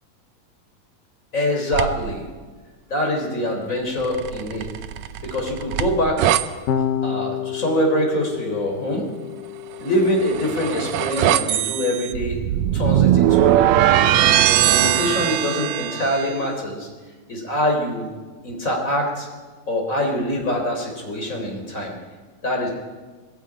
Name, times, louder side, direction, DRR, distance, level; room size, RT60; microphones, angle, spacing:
voice 1, 1.3-2.3 2.9-4.7 5.2-6.3 7.0-9.1 9.8-12.4 12.7-16.9 17.3-18.1 18.4-19.3 19.7-21.9 22.4-22.7, left 1 dB, 25° left, 1 dB, 3.5 m, -24 dB
sound 1, 1.7-2.2 4.0-6.4 9.9-16.3, right 12 dB, 80° right, 1.6 m, -20 dB
Electric guitar / Bass guitar, 6.7-13.1, left 9 dB, 80° left, 2.8 m, -31 dB
19.0 x 16.0 x 8.8 m, 1.4 s
omnidirectional pair, 4.0 m